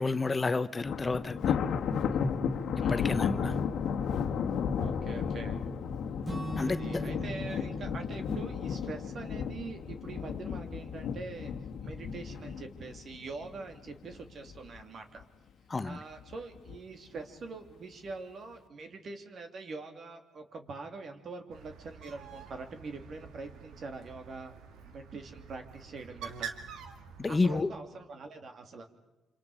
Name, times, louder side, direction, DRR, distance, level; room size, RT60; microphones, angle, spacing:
voice 1, 0.0-1.5 2.9-3.5 6.6-6.8 15.7-16.0 27.2-27.7, left 3 dB, 25° left, 0.9 m, -30 dB
Thunder, 0.8-14.1 14.5-14.8 15.2-15.3 16.2-16.7, left 6 dB, 70° left, 1.5 m, -33 dB
voice 2, 2.8-3.3 4.8-5.6 6.6-11.5 11.8-15.2 15.8-24.5 24.9-26.5 27.3-28.9, right 3 dB, 55° right, 3.0 m, -44 dB
Acoustic guitar / Strum, 6.2-10.2, right 2 dB, 30° right, 5.8 m, -42 dB
Bird, 21.5-27.6, right 6 dB, 85° right, 2.2 m, -46 dB
27.0 x 26.5 x 5.1 m
cardioid pair, 90°, 0 cm